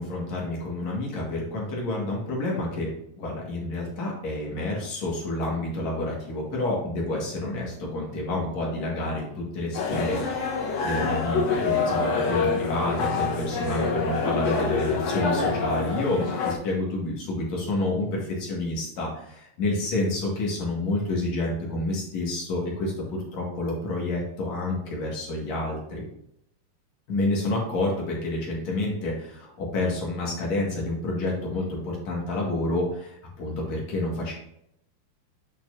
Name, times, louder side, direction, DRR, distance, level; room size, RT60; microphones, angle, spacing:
voice 1, 0.0-10.2 10.5-22.9 23.3-26.0 27.1-34.3, left 2 dB, 50° left, -3 dB, 2.8 m, -29 dB
sound 1, 9.7-16.6, left 4 dB, 70° left, 2.8 m, -26 dB
8.6 x 5.8 x 2.7 m, 0.76 s
omnidirectional pair, 4.5 m